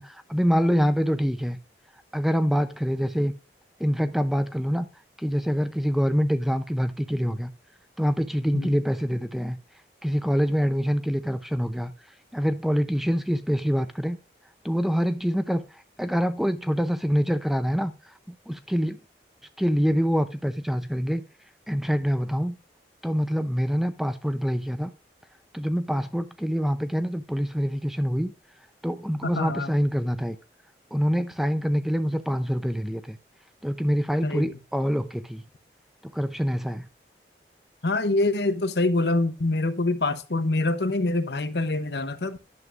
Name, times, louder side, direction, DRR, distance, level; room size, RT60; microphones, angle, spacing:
voice 1, 0.0-1.6 2.1-3.3 3.8-4.9 5.2-7.5 8.0-9.6 10.0-11.9 12.3-14.2 14.6-17.9 18.5-19.0 19.6-21.2 21.7-22.6 23.0-24.9 25.5-28.3 28.8-30.4 30.9-33.2 33.6-35.4 36.1-36.8, equal, ahead, 0.6 m, -25 dB
voice 2, 29.2-29.7 34.2-34.6 37.8-42.4, left 2 dB, 75° left, 0.9 m, -25 dB
10.5 x 8.0 x 2.5 m
head